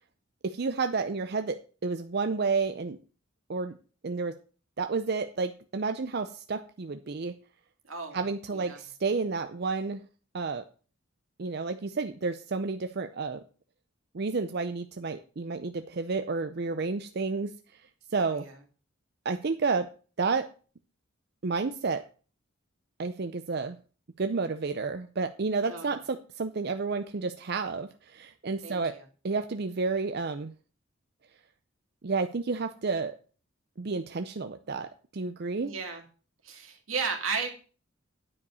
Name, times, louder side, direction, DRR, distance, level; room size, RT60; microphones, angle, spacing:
voice 1, 0.4-3.0 3.5-3.7 4.0-4.4 4.8-7.3 8.1-10.0 10.3-10.6 11.4-13.4 14.1-17.5 18.1-18.5 19.2-19.9 20.2-20.5 21.4-22.0 23.0-23.8 24.2-29.0 29.2-30.5 32.0-33.1 33.8-35.7, right 4 dB, 55° right, 8 dB, 0.6 m, -31 dB
voice 2, 7.9-8.2 8.5-8.8 18.1-18.5 25.6-26.0 28.6-29.0 35.6-36.0 36.4-37.5, right 4 dB, 90° right, 4 dB, 2.3 m, -34 dB
9.6 x 5.2 x 6.9 m, 0.37 s
head